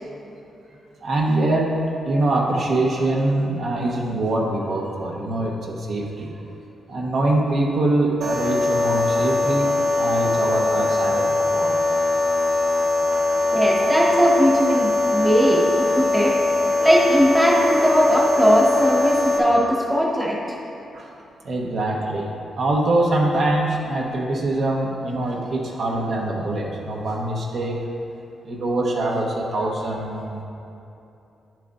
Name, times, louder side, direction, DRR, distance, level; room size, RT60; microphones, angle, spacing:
voice 1, 1.0-1.7 2.0-6.3 6.9-11.8 13.1-13.2 16.1-16.2 20.9-21.1 21.4-22.3 22.6-27.8 28.4-30.4, right 2 dB, 55° right, -2 dB, 1.0 m, -23 dB
sound 1, 8.2-19.4, left 2 dB, 80° right, 1.1 m, -21 dB
voice 2, 13.5-16.4 16.8-20.4, equal, 10° right, -3 dB, 1.1 m, -19 dB
9.8 x 7.5 x 2.6 m, 2.8 s
wide cardioid pair, 135°, 0 cm